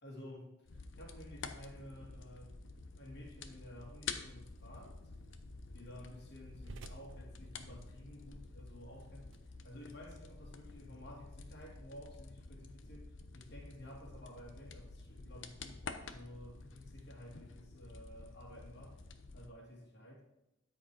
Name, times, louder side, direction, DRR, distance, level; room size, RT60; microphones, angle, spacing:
voice 1, 0.0-2.6 3.0-5.0 5.7-9.3 9.6-19.0 19.3-20.2, left 1 dB, 55° left, -1 dB, 2.8 m, -53 dB
sound 1, 0.7-19.5, left 4 dB, 70° left, 0.8 m, -50 dB
sound 2, 4.6-10.8, right 3 dB, 70° right, 0.7 m, -59 dB
12.5 x 5.1 x 4.9 m, 0.88 s
head